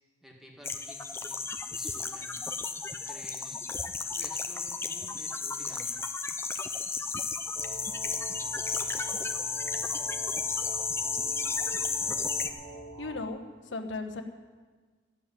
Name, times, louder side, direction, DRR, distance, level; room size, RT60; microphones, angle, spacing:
voice 1, 0.2-2.4 2.9-3.6 4.1-6.0, equal, ahead, -1 dB, 1.7 m, -52 dB
sound 1, 0.6-12.5, left 4 dB, 15° left, 0.5 m, -33 dB
sound 2, 7.5-13.2, right 2 dB, 30° right, 2.6 m, -44 dB
voice 2, 13.0-13.4 13.7-14.2, left 3 dB, 75° left, 4 dB, 1.2 m, -36 dB
13.5 x 7.1 x 9.8 m, 1.4 s
head